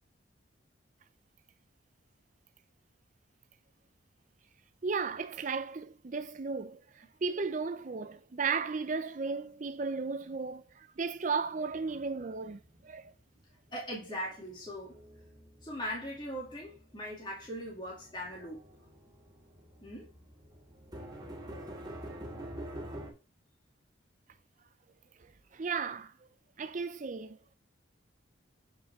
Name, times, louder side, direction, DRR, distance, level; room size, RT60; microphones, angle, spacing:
voice 1, 4.8-13.1 25.5-26.1 26.6-27.4, right 5 dB, 40° right, 0.4 m, -35 dB
sound 1, 11.7-13.4 13.7-23.1, right 1 dB, 20° right, 2.6 m, -47 dB
voice 2, 13.7-15.0 15.6-18.6 19.8-20.1, equal, 25° left, 2.4 m, -40 dB
8.4 x 5.3 x 3.5 m
head